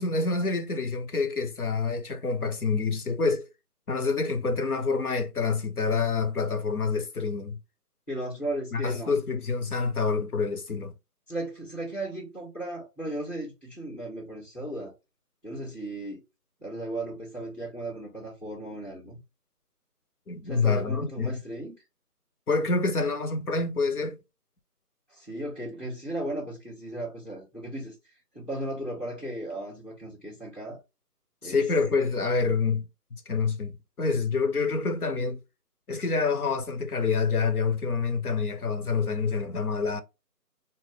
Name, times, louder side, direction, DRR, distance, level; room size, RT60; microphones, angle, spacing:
voice 1, 0.0-3.5 3.9-7.6 8.7-10.9 20.3-21.4 22.5-24.2 31.4-33.7 34.0-35.4 35.9-40.0, left 4 dB, 65° left, 1.0 m, -27 dB
voice 2, 8.1-9.1 11.3-14.9 15.4-16.2 16.6-19.2 20.4-21.8 25.1-30.8 31.4-31.7, right 1 dB, 15° left, 1.5 m, -36 dB
4.1 x 2.1 x 3.4 m
figure-of-eight pair, 165°, 48 cm